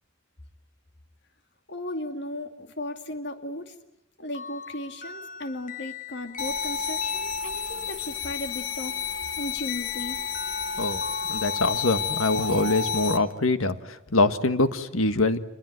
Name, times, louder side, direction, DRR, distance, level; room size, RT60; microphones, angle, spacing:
voice 1, 1.7-3.8 4.2-9.0 9.4-10.2, left 1 dB, 55° left, 7 dB, 2.5 m, -36 dB
sound 1, 4.3-8.1 9.7-13.4, left 6 dB, 40° left, 1.2 m, -42 dB
sound 2, 6.4-13.2, left 6 dB, 70° left, 1.2 m, -30 dB
voice 2, 11.3-15.4, left 2 dB, 90° left, 10 dB, 1.6 m, -24 dB
27.5 x 21.0 x 9.3 m, 0.87 s
head